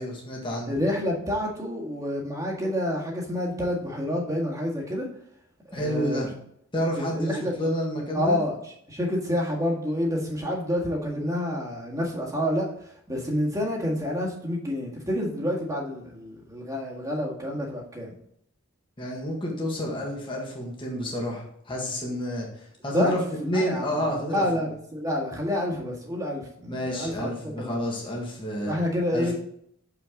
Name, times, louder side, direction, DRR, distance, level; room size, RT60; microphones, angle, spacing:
voice 1, 0.0-0.7 5.7-6.3 6.7-8.4 19.0-23.2 23.5-24.4 26.6-28.7 29.1-29.3, equal, 25° left, -2 dB, 1.6 m, -29 dB
voice 2, 0.7-5.1 5.7-6.2 7.0-7.5 8.1-8.5 8.9-12.7 13.1-18.1 22.9-23.1 23.4-24.0 24.3-27.3 27.6-27.8 28.6-29.3, left 1 dB, 15° right, -2 dB, 1.7 m, -28 dB
6.8 x 5.9 x 3.7 m, 0.68 s
head